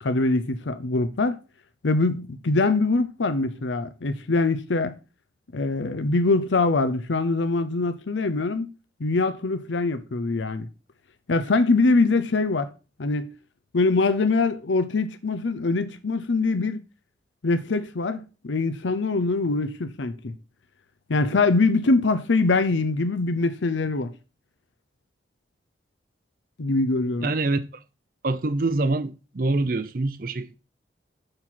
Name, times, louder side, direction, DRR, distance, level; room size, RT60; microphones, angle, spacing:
voice 1, 0.0-1.4 1.8-4.9 5.5-8.7 9.0-10.7 11.3-12.7 13.0-13.3 13.7-16.8 17.4-20.3 21.1-24.1 26.6-27.3, left 3 dB, 90° left, 0.7 m, -23 dB
voice 2, 27.2-27.6 28.2-30.6, right 2 dB, 50° right, 0.6 m, -25 dB
6.8 x 4.2 x 5.8 m
head